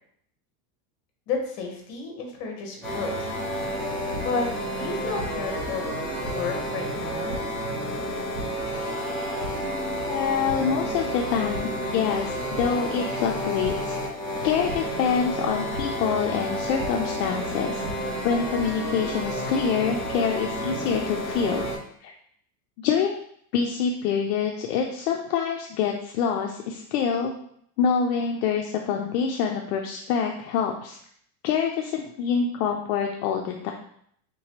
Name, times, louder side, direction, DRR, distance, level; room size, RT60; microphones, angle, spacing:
voice 1, 1.3-3.1 4.2-4.5 4.8-7.4, left 4 dB, 50° left, 2 dB, 1.1 m, -32 dB
sound 1, 2.8-21.8, equal, ahead, 0.9 m, -30 dB
sound 2, 4.1-4.2 5.2-5.3 6.2-6.3 7.3-7.4 8.3-8.4 9.4-9.5 9.9-10.1 10.4-10.6 11.5-11.6 12.6-12.7 13.6-13.7 14.7-14.8 15.7-15.8 16.8-16.9 17.6-17.9, right 2 dB, 45° right, 0.6 m, -35 dB
voice 2, 10.0-14.0 14.4-17.8 18.2-21.7 22.0-22.1 22.8-23.2 23.5-27.3 27.8-31.0 31.4-33.7, left 7 dB, 70° left, 1 dB, 0.6 m, -26 dB
3.7 x 3.0 x 2.9 m, 0.66 s
supercardioid pair, 160°, 47 cm